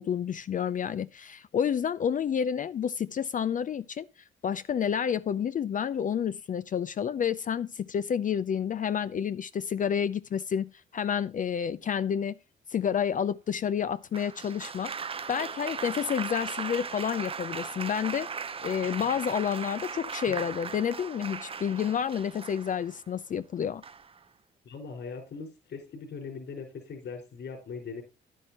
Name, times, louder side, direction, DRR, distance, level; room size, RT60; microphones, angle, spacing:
voice 1, 0.0-4.1 4.4-12.3 12.7-18.3 18.6-23.8, left 8 dB, 40° left, 0.4 m, -29 dB
Applause, 14.1-23.0 23.8-24.2, right 6 dB, 30° right, 0.5 m, -38 dB
voice 2, 24.6-28.0, left 5 dB, 60° left, 4.9 m, -40 dB
10.5 x 10.0 x 2.9 m
cardioid pair, 90°, 20 cm